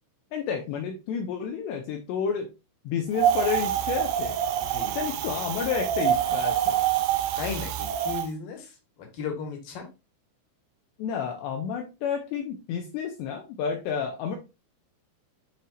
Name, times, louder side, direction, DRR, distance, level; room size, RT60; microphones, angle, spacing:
voice 1, 0.3-2.5 2.9-4.4 5.0-6.8 11.0-14.4, left 7 dB, 80° left, 3 dB, 2.6 m, -30 dB
Wind, 3.2-8.3, right 10 dB, 90° right, 2.4 m, -26 dB
voice 2, 4.6-5.0 7.4-8.7 9.1-9.9, left 5 dB, 60° left, 3 dB, 2.5 m, -35 dB
9.7 x 4.5 x 2.5 m, 0.27 s
omnidirectional pair, 5.8 m